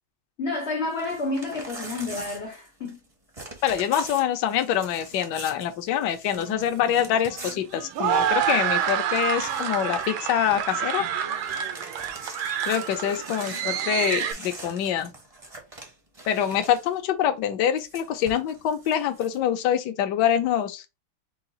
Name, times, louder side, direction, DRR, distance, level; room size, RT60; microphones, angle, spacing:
voice 1, 0.4-3.0, left 3 dB, 85° left, 0.5 m, -30 dB
Crumpling crinkling / Tearing, 0.9-3.1 3.3-8.4 8.8-8.9 9.1-10.2 10.5-10.8 11.2-17.0 17.8-19.4, right 2 dB, 35° right, 0.5 m, -43 dB
voice 2, 3.6-11.1 12.7-15.1 16.3-20.8, left 10 dB, 70° left, 1.1 m, -25 dB
sound 1, 6.4-14.3, right 9 dB, 70° right, 1.4 m, -28 dB
4.8 x 2.3 x 3.9 m
omnidirectional pair, 2.4 m